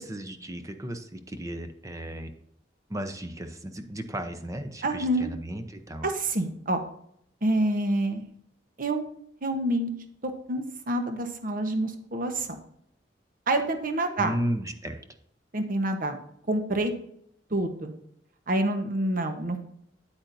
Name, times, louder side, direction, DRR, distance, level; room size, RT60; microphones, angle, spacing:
voice 1, 0.1-2.3 2.9-6.1 14.2-15.0, right 1 dB, 20° right, 7 dB, 0.7 m, -34 dB
voice 2, 4.8-5.3 6.0-6.8 7.4-8.3 8.8-9.0 9.4-9.9 10.2-12.5 13.5-14.3 15.5-16.2 16.5-16.9 17.5-17.9 18.5-19.7, right 1 dB, 50° right, 6 dB, 1.1 m, -27 dB
9.0 x 8.7 x 2.7 m, 0.70 s
head